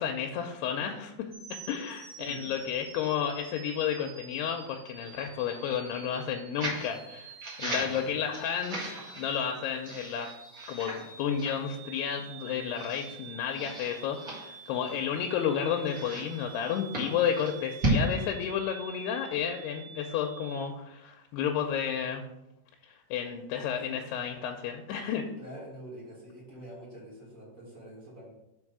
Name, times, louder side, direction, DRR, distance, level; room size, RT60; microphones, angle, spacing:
voice 1, 0.0-7.3 7.6-10.3 10.7-22.2 22.8-25.3, left 8 dB, 85° left, 4 dB, 2.6 m, -32 dB
sound 1, 1.3-20.7, right 6 dB, 80° right, 3.4 m, -48 dB
voice 2, 2.2-2.5 7.6-8.1 23.6-23.9 25.4-28.3, equal, 25° right, -6 dB, 1.9 m, -46 dB
sound 2, 6.6-6.9 7.4-9.4 9.8-11.1 11.4-11.6 12.1-12.2 12.7-13.2 13.5-15.2 15.9-18.0, right 1 dB, 50° right, 0.9 m, -35 dB
5.3 x 5.3 x 4.8 m, 0.89 s
omnidirectional pair, 4.7 m